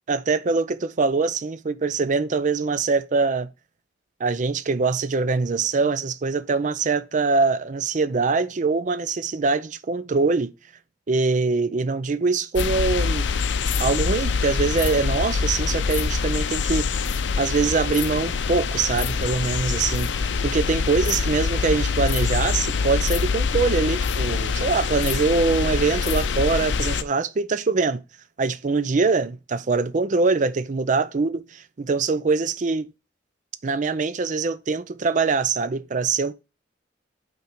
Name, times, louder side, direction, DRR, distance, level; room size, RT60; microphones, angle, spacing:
voice 1, 0.1-3.5 4.2-10.5 11.1-13.3 13.8-16.9 17.4-28.0 28.4-32.9 33.6-36.3, right 4 dB, 40° right, 0.5 m, -23 dB
sound 1, 12.6-27.0, left 5 dB, 70° left, 0.5 m, -24 dB
5.6 x 3.9 x 5.8 m
head